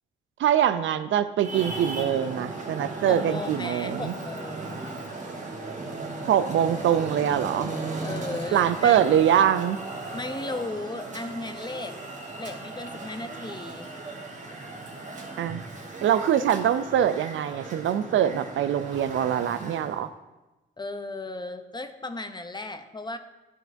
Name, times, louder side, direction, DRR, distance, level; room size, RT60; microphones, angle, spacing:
voice 1, 0.4-4.1 6.3-7.7 8.5-9.8 15.4-15.6 16.0-20.1, right 9 dB, 70° right, 12 dB, 0.4 m, -23 dB
Traffic noise roadway noise, 1.4-20.0, right 3 dB, 35° right, 1.2 m, -37 dB
voice 2, 3.1-4.9 8.0-9.0 10.1-12.0 12.4-13.9 20.8-23.2, left 2 dB, 20° left, 8 dB, 0.6 m, -35 dB
12.0 x 4.5 x 2.6 m, 1.1 s
cardioid pair, 65°, 21 cm